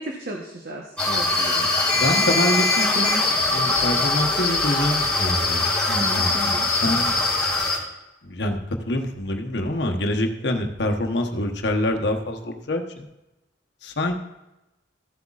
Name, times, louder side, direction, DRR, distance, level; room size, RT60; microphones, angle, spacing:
voice 1, 0.0-1.7 5.8-6.7, right 1 dB, 55° right, 0 dB, 1.0 m, -34 dB
sound 1, 1.0-7.8, left 2 dB, 5° left, 2.2 m, -22 dB
voice 2, 1.9-6.6 6.8-7.2 8.2-13.1 13.8-14.1, left 1 dB, 65° left, 3 dB, 1.0 m, -26 dB
14.5 x 7.9 x 2.4 m, 0.96 s
head